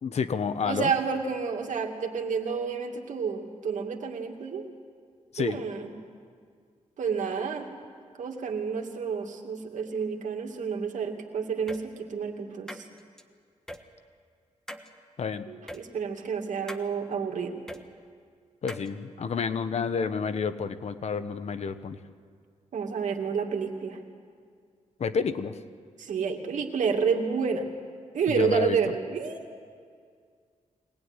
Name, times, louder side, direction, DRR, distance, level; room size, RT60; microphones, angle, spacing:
voice 1, 0.0-0.9 5.3-5.6 15.2-15.4 18.6-22.0 25.0-25.6 28.3-28.8, left 6 dB, 60° left, 10 dB, 1.2 m, -30 dB
voice 2, 0.6-4.6 5.4-5.9 7.0-7.7 8.2-12.8 15.5-17.6 22.7-24.0 26.0-27.7 28.1-29.5, right 6 dB, 75° right, 3 dB, 2.5 m, -29 dB
sound 1, 11.7-11.8 12.7-13.2 13.7-13.8 14.7-14.9 15.7-15.8 16.7-16.9 17.7-17.8 18.7-18.9, equal, 5° left, 1.4 m, -40 dB
23.5 x 19.0 x 9.8 m, 2.1 s
wide cardioid pair, 115°, 13 cm